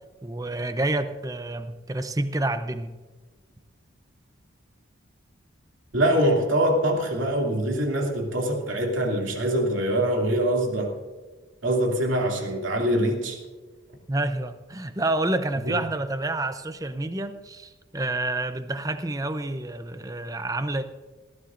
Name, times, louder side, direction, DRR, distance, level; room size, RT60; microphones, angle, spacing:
voice 1, 0.2-2.9 14.1-20.8, right 2 dB, 15° right, 10 dB, 0.6 m, -28 dB
voice 2, 5.9-11.0 11.6-13.4 15.7-15.8, right 1 dB, 65° right, 1 dB, 2.7 m, -24 dB
19.5 x 14.5 x 2.6 m, 1.3 s
head